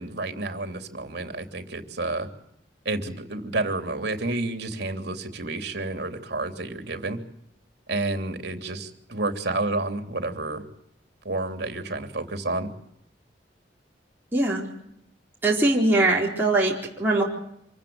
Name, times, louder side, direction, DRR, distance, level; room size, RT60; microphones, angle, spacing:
voice 1, 0.0-2.3 2.8-7.2 7.9-10.6 11.2-12.7, right 2 dB, 60° right, 6 dB, 3.2 m, -30 dB
voice 2, 14.3-14.7 15.4-17.2, right 2 dB, 10° right, -4 dB, 4.3 m, -21 dB
26.5 x 15.0 x 8.9 m, 0.77 s
head